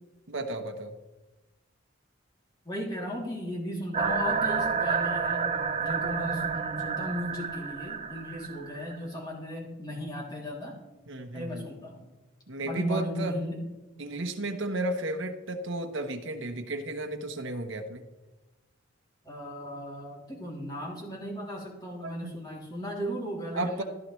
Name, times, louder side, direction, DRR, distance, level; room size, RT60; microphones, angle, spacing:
voice 1, 0.3-0.9 11.1-11.7 12.5-13.4 14.0-18.0 22.0-22.4 23.5-23.8, right 2 dB, 70° right, 5 dB, 1.1 m, -33 dB
voice 2, 2.6-5.5 5.8-10.8 11.3-12.1 12.6-13.6 19.2-23.8, equal, 20° left, -3 dB, 2.8 m, -36 dB
sound 1, 3.9-9.0, right 5 dB, 30° right, 0.5 m, -30 dB
15.0 x 12.0 x 3.2 m, 1.1 s
head